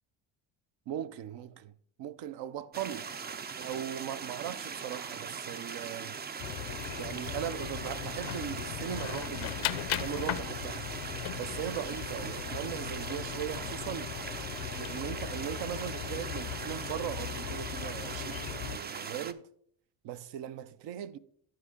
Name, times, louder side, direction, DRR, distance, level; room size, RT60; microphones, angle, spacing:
voice 1, 0.9-1.7 2.0-3.1 3.6-6.2 7.0-10.9 11.4-14.1 14.8-19.5 20.0-21.2, right 10 dB, 65° right, 0.6 m, -39 dB
sound 1, 2.7-19.3, right 6 dB, 25° right, 0.4 m, -40 dB
sound 2, 6.4-18.8, left 15 dB, 90° left, 0.6 m, -38 dB
11.5 x 4.7 x 3.7 m
cardioid pair, 75°, 46 cm